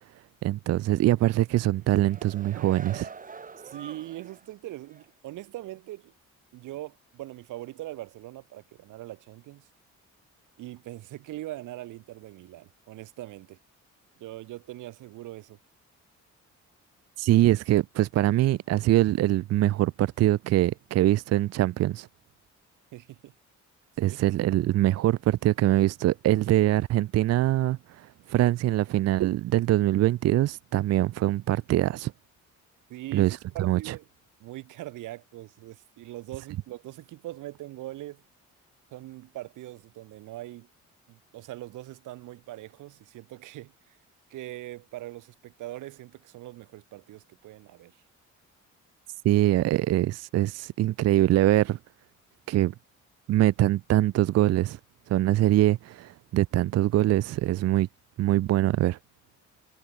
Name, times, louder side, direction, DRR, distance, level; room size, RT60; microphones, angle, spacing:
voice 1, 0.4-3.1 17.2-22.1 24.0-32.1 33.1-33.9 49.2-51.8 52.5-52.7 53.3-54.8 55.1-57.9 58.2-59.0, right 14 dB, 55° right, 0.4 m, -23 dB
sound 1, 1.8-4.5 4.9-5.1, right 5 dB, 25° right, 1.5 m, -45 dB
voice 2, 3.6-6.1 6.5-9.7 10.6-13.6 14.2-15.6 22.9-23.3 24.0-24.2 32.9-34.0 34.4-38.2 38.9-40.7 41.1-44.0 44.3-48.0, right 16 dB, 85° right, 1.6 m, -41 dB
cardioid pair, 90°, 30 cm